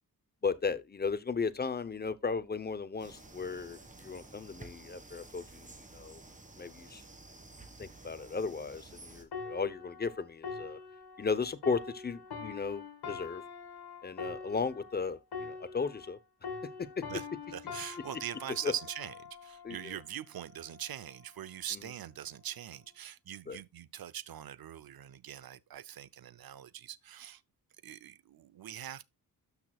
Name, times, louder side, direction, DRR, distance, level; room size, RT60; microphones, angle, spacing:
voice 1, 0.4-5.7 5.9-6.2 6.6-7.0 7.8-10.8 11.2-13.4 14.0-16.2 17.0-17.1 18.6-18.7 19.6-20.0 21.7-21.9 23.5-23.6, left 5 dB, 25° left, 0.7 m, -35 dB
sound 1, 3.0-9.2, right 2 dB, 20° right, 1.6 m, -52 dB
sound 2, 9.3-16.2 16.4-20.0 20.7-20.9, left 5 dB, 85° left, 2.0 m, -44 dB
voice 2, 17.5-27.4 27.8-29.1, right 10 dB, 70° right, 0.6 m, -42 dB
12.5 x 6.1 x 2.3 m
wide cardioid pair, 140°, 38 cm